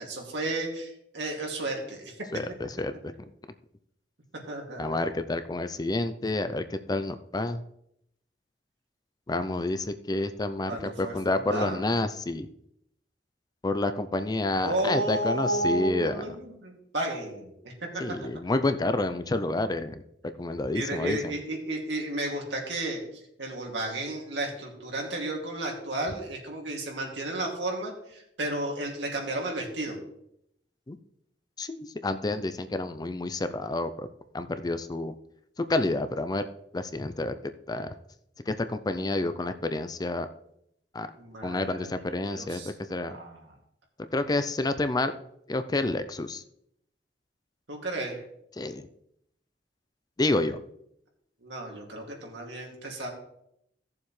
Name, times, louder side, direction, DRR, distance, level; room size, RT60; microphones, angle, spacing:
voice 1, 0.0-2.1 4.5-5.0 10.7-11.9 14.6-17.5 20.7-23.0 23.4-30.0 41.1-42.7 43.0-43.5 47.7-48.2 51.4-53.1, right 1 dB, 85° right, 0 dB, 2.4 m, -33 dB
voice 2, 2.3-2.9 4.8-7.6 9.3-12.5 13.6-16.2 18.0-20.0 20.4-21.3 30.9-31.0 31.6-34.1 34.3-35.1 35.7-36.4 36.7-37.3 37.7-37.9 38.5-40.3 40.9-41.1 41.4-42.6 42.9-43.2 44.1-45.1 45.5-46.4 48.6-48.9 50.2-50.6, left 2 dB, 20° left, 11 dB, 0.5 m, -29 dB
16.0 x 7.1 x 3.2 m, 0.76 s
head